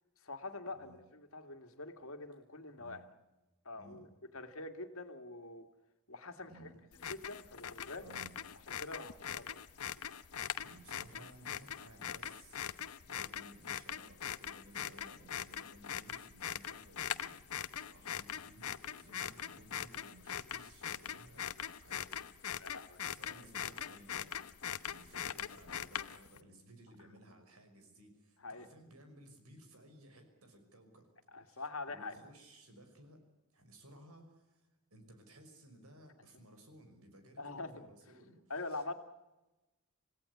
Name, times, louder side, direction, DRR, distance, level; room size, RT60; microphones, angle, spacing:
voice 1, 0.2-3.0 3.6-4.1 4.3-5.7 6.1-6.7 7.1-8.1 8.8-9.6 22.5-23.0 28.4-28.7 31.3-32.2 37.4-37.9 38.5-38.9, left 2 dB, 70° left, 7 dB, 2.3 m, -44 dB
voice 2, 3.8-4.1 6.4-6.8 8.0-8.4 10.5-22.6 23.1-24.3 24.9-31.1 31.4-33.2 33.5-38.4 38.7-38.9, right 1 dB, 80° right, 7 dB, 5.8 m, -58 dB
sound 1, 6.9-26.4, left 9 dB, 85° left, 1.0 m, -42 dB
27.5 x 17.0 x 9.8 m, 1.1 s
head